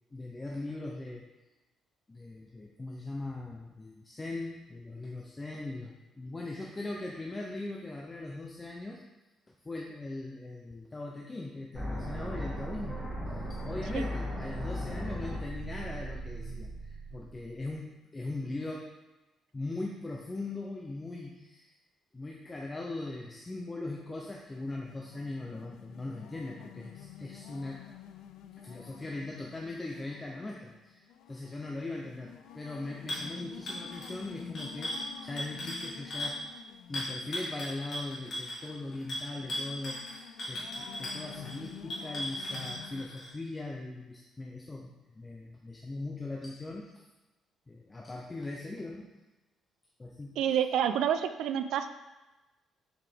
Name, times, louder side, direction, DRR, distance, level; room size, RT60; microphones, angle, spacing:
voice 1, 0.1-1.3 2.1-9.0 9.5-18.9 19.5-21.7 22.1-27.9 28.6-36.4 36.9-46.9 47.7-49.1 50.0-50.4, left 2 dB, 15° left, -1 dB, 0.5 m, -40 dB
sound 1, 11.7-17.7, equal, 5° right, 1.4 m, -37 dB
sound 2, 24.2-43.0, left 9 dB, 90° left, 0.4 m, -50 dB
sound 3, 33.1-33.3 33.7-36.4 36.9-43.3, left 1 dB, 40° left, 1.7 m, -37 dB
voice 2, 50.4-51.9, right 9 dB, 75° right, 9 dB, 0.4 m, -28 dB
7.1 x 4.8 x 3.4 m, 1.1 s
cardioid pair, 180°, 0 cm